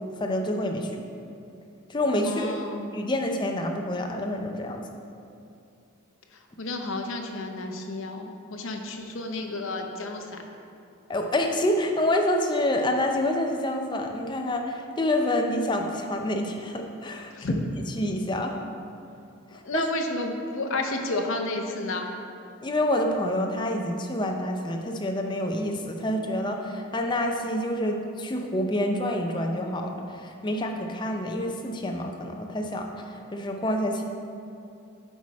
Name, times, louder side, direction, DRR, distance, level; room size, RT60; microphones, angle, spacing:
voice 1, 0.2-1.0 1.9-2.6 2.9-4.8 11.1-17.6 18.0-18.6 19.5-19.8 22.6-34.0, left 1 dB, 20° left, 3 dB, 0.5 m, -27 dB
voice 2, 2.3-2.9 6.3-10.2 17.3-17.6 19.5-22.1, left 2 dB, 70° left, 3 dB, 0.7 m, -31 dB
8.0 x 4.8 x 4.2 m, 2.7 s
head